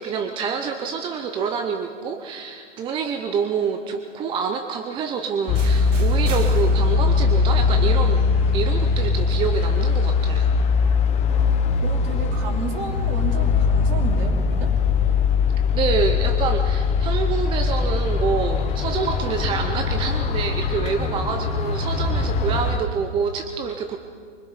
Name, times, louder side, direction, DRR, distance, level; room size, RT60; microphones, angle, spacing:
voice 1, 0.0-8.2 8.5-10.5 15.7-24.0, right 6 dB, 15° right, 6 dB, 0.6 m, -27 dB
sound 1, 5.5-22.8, left 5 dB, 20° left, 1.0 m, -21 dB
sound 2, 5.6-11.4, right 4 dB, 85° right, 2.1 m, -35 dB
voice 2, 11.8-14.7, right 4 dB, 40° right, 2 dB, 3.2 m, -32 dB
24.0 x 20.5 x 5.5 m, 2.1 s
hypercardioid pair, 140°, 36 cm